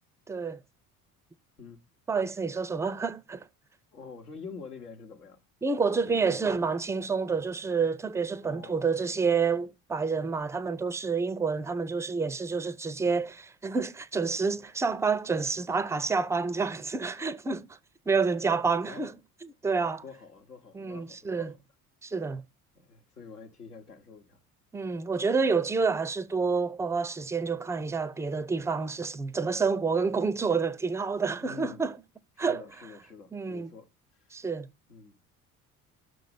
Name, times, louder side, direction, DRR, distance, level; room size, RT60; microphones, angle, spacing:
voice 1, 0.3-0.6 2.1-3.5 5.6-17.8 18.1-19.1 19.4-20.0 20.7-21.5 22.0-22.4 24.7-32.0 32.4-32.6 33.3-33.7 34.3-34.7, right 4 dB, 5° right, 0.3 m, -28 dB
voice 2, 3.9-5.4 5.9-6.6 8.4-8.9 18.8-19.1 20.0-21.6 22.7-24.4 31.4-31.8 32.4-34.3 34.9-35.2, left 5 dB, 85° left, 1.0 m, -47 dB
6.2 x 4.2 x 6.4 m
figure-of-eight pair, 55°, 45 cm